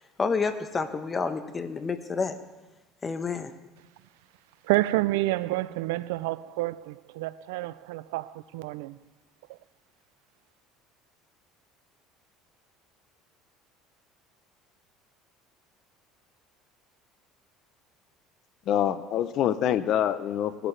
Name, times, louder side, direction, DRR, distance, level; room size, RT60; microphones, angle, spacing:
voice 1, 0.2-2.4 3.0-3.5, left 4 dB, 30° left, 1.2 m, -29 dB
voice 2, 4.6-9.0 9.5-9.6, right 18 dB, 85° right, 0.4 m, -29 dB
voice 3, 18.7-20.7, left 10 dB, 60° left, 0.7 m, -26 dB
18.0 x 13.0 x 3.3 m
supercardioid pair, 90°, 0 cm